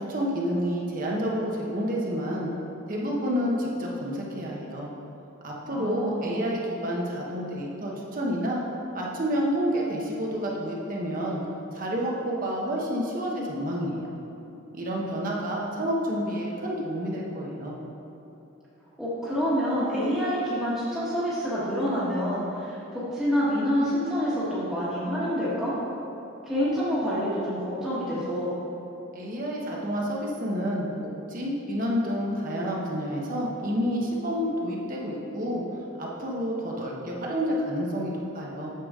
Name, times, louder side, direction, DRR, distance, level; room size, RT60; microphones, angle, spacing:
voice 1, 0.0-2.5 2.9-4.9 5.4-8.6 8.9-11.4 11.7-14.1 14.7-17.7 29.1-30.9 31.3-35.6 36.0-38.7, equal, 40° right, -3 dB, 0.9 m, -29 dB
voice 2, 5.7-6.4 19.0-25.7 26.4-28.5, equal, ahead, -13 dB, 1.4 m, -27 dB
8.4 x 6.9 x 3.6 m, 2.9 s
head